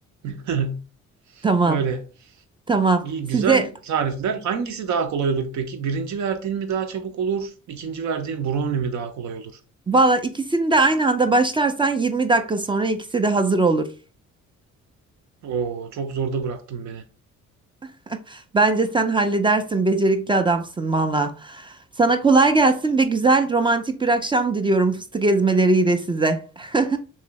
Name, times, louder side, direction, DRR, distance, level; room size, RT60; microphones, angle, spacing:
voice 1, 0.2-0.8 1.4-2.0 3.0-9.5 15.4-17.0, right 6 dB, 70° right, 0.7 m, -26 dB
voice 2, 1.4-1.8 2.7-3.7 9.9-13.9 18.1-27.0, right 3 dB, 15° right, 0.4 m, -20 dB
3.1 x 2.7 x 2.9 m
cardioid pair, 90°, 30 cm